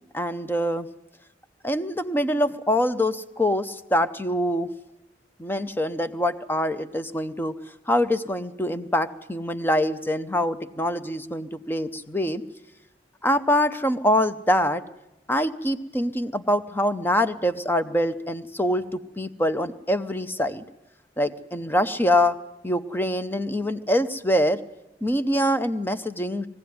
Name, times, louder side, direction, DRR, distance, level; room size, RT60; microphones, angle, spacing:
voice 1, 0.1-0.9 1.6-4.7 5.4-7.5 7.9-12.4 13.2-14.8 15.3-20.6 21.2-22.4 22.6-24.6 25.0-26.5, left 1 dB, 10° left, 11 dB, 0.7 m, -24 dB
21.0 x 15.5 x 9.5 m, 0.93 s
head